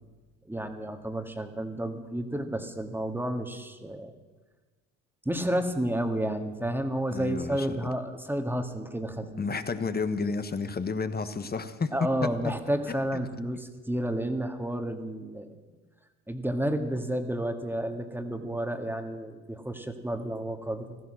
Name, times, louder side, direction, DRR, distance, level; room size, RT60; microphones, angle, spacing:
voice 1, 0.5-4.1 5.3-9.5 11.9-15.6 16.3-21.0, right 1 dB, 5° right, 6 dB, 1.9 m, -31 dB
voice 2, 7.1-7.8 9.4-11.9 12.4-12.5, left 4 dB, 25° left, 10 dB, 1.3 m, -31 dB
16.0 x 14.0 x 6.5 m, 1.3 s
hypercardioid pair, 75°, 38 cm